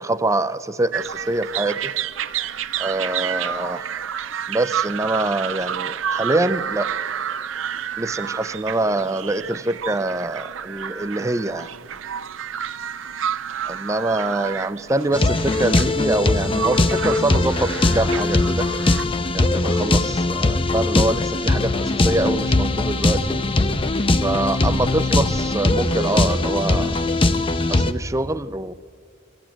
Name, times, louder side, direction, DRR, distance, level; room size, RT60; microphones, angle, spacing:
voice 1, 0.0-1.9 2.8-3.9 4.5-6.9 8.0-11.7 13.7-18.7 19.3-23.4 24.2-27.0 27.7-28.7, right 2 dB, 15° right, 14 dB, 0.5 m, -24 dB
sound 1, 0.9-19.0, right 9 dB, 90° right, 0.6 m, -30 dB
sound 2, 15.1-27.9, left 2 dB, 30° left, 0.6 m, -20 dB
22.5 x 14.5 x 8.9 m, 2.2 s
head